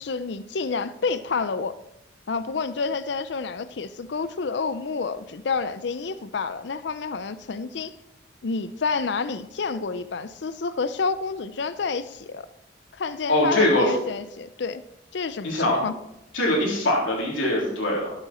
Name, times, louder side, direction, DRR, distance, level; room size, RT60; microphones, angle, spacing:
voice 1, 0.0-1.7 2.3-7.9 8.4-12.5 12.9-14.8 15.1-16.0, left 4 dB, 65° left, 13 dB, 0.5 m, -29 dB
voice 2, 13.3-13.9 15.4-15.8 16.3-18.1, left 1 dB, 90° left, -2 dB, 3.5 m, -22 dB
12.0 x 9.0 x 4.3 m, 0.84 s
head